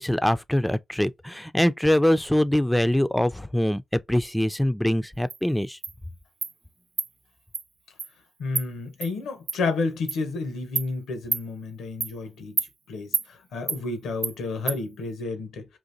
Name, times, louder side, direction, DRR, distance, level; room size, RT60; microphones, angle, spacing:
voice 1, 0.0-5.8, left 1 dB, 5° left, 0.4 m, -23 dB
Insect, 5.3-5.4 5.8-5.9 6.4-6.5 7.0-7.1 7.5-7.6 8.0-8.1 8.5-8.7 9.0-9.1 9.5-9.6 10.1-10.2 10.8-10.9 11.3-11.4 12.0-12.1 12.6-12.7 13.1-13.3 13.7-13.8 14.2-14.3 14.7-14.8, right 5 dB, 60° right, 0.3 m, -28 dB
voice 2, 8.4-12.6 12.9-15.7, left 3 dB, 90° left, 0.9 m, -31 dB
3.8 x 2.6 x 2.5 m
supercardioid pair, 45°, 0 cm